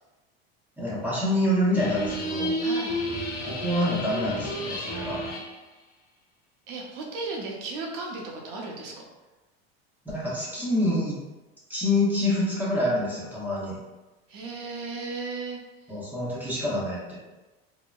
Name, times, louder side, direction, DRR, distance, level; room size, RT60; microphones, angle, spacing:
voice 1, 0.8-2.6 3.5-5.2 10.0-11.2 11.7-13.8 15.9-17.2, left 1 dB, 5° right, -8 dB, 0.9 m, -26 dB
sound 1, 1.7-5.5, equal, 30° left, 0.6 m, -31 dB
voice 2, 2.6-3.0 6.7-9.1 14.3-15.6, right 3 dB, 65° right, -1 dB, 0.8 m, -35 dB
2.8 x 2.1 x 2.3 m, 1.1 s
supercardioid pair, 110°, 31 cm